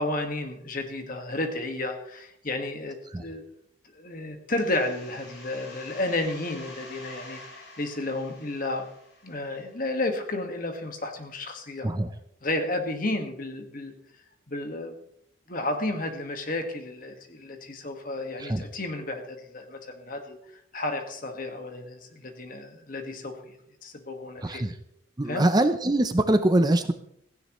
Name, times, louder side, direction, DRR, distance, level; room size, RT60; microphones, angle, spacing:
voice 1, 0.0-3.4 3.9-8.9 9.2-11.9 12.4-13.9 14.5-15.0 15.5-20.4 20.7-24.6 25.2-25.5, left 2 dB, 40° left, 5 dB, 1.7 m, -32 dB
sound 1, 4.5-10.0, left 2 dB, 65° left, 5.1 m, -47 dB
voice 2, 24.4-24.7 25.2-26.9, right 1 dB, 20° right, 9 dB, 0.6 m, -23 dB
16.5 x 15.5 x 3.1 m, 0.71 s
head